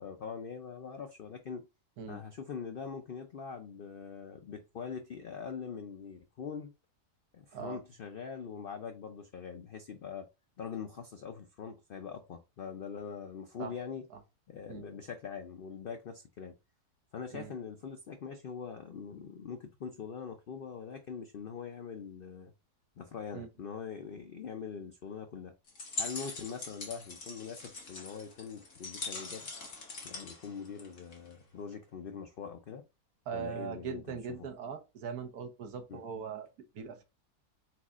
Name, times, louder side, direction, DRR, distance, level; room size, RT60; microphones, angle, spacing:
voice 1, 0.0-1.7 2.1-6.7 7.3-10.3 10.6-14.0 14.5-16.5 17.1-22.5 23.0-25.5 26.0-29.5 30.0-32.8 33.3-34.5 35.9-36.0, left 6 dB, 75° left, 0.5 m, -43 dB
sound 1, 25.7-31.3, left 3 dB, 50° left, 1.6 m, -42 dB
voice 2, 33.3-36.5 36.7-37.0, right 7 dB, 70° right, 1.3 m, -40 dB
4.5 x 4.0 x 2.4 m
omnidirectional pair, 1.7 m